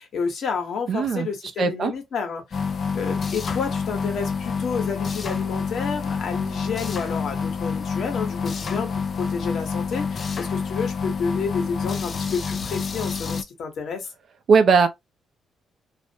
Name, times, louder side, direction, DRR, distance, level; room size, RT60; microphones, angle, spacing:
voice 1, 0.0-2.6 2.9-8.9 9.2-14.1, left 5 dB, 65° left, 1.0 m, -30 dB
voice 2, 0.9-1.3 1.6-1.9 14.5-14.9, right 5 dB, 55° right, 0.5 m, -18 dB
sound 1, 2.5-13.4, left 5 dB, 40° left, 0.3 m, -28 dB
2.4 x 2.1 x 2.7 m
cardioid pair, 90°, 0 cm